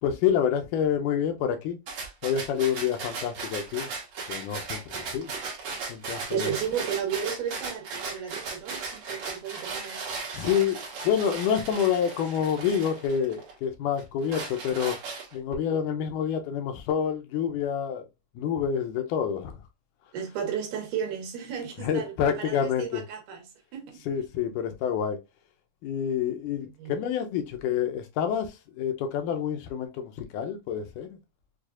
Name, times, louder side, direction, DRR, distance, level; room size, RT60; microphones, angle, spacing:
voice 1, 0.0-1.8 2.2-3.9 4.3-4.8 5.1-5.3 5.9-6.5 10.3-15.0 15.3-18.0 18.4-19.6 21.8-23.0 24.1-25.2 25.8-31.2, left 8 dB, 80° left, 2.1 m, -28 dB
sound 1, 1.9-13.5 14.0-15.5, right 4 dB, 60° right, 1.9 m, -37 dB
voice 2, 6.3-10.1 20.1-24.0 26.8-27.0, right 8 dB, 75° right, 2.4 m, -33 dB
6.2 x 2.4 x 2.3 m
omnidirectional pair, 3.7 m